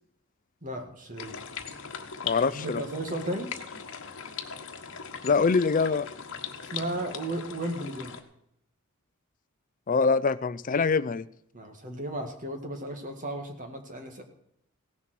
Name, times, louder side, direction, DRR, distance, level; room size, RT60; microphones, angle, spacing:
voice 1, 0.6-1.4 2.5-3.5 6.6-8.2 11.5-14.2, right 1 dB, 35° right, 4 dB, 1.9 m, -34 dB
sound 1, 1.2-8.2, left 7 dB, 60° left, 1.3 m, -39 dB
voice 2, 2.2-2.8 5.2-6.1 9.9-11.3, left 4 dB, 35° left, 16 dB, 0.5 m, -24 dB
17.0 x 7.3 x 6.1 m, 0.76 s
head